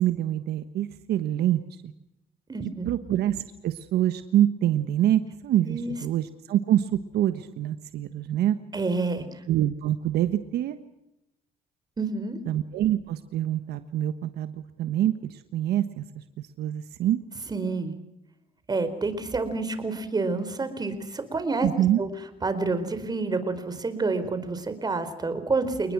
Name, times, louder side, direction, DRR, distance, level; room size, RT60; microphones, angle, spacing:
voice 1, 0.0-1.9 2.8-8.6 9.5-10.8 12.5-16.2 16.6-17.2 21.6-22.0, right 12 dB, 70° right, 10 dB, 1.4 m, -25 dB
voice 2, 2.5-2.9 5.7-6.0 8.7-9.2 12.0-12.4 17.5-17.9 18.7-21.7 22.0-22.1 22.4-25.9, right 3 dB, 25° right, 10 dB, 4.4 m, -28 dB
29.0 x 20.5 x 6.2 m, 0.88 s
cardioid pair, 110°, 17 cm